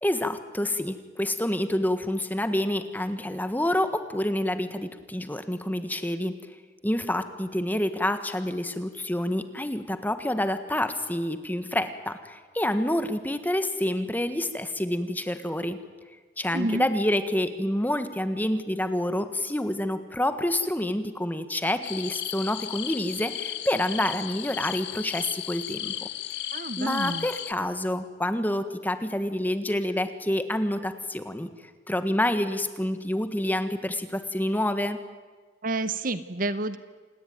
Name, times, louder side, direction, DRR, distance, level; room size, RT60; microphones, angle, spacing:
voice 1, 0.0-6.3 6.8-15.8 16.4-25.9 26.8-31.5 31.9-35.0, left 1 dB, 10° left, 10 dB, 1.5 m, -28 dB
voice 2, 16.5-16.9 26.5-27.3 35.6-36.8, right 2 dB, 50° right, 13 dB, 1.0 m, -29 dB
sound 1, 21.8-27.5, left 12 dB, 70° left, 1.1 m, -35 dB
27.5 x 19.5 x 9.4 m, 1.4 s
head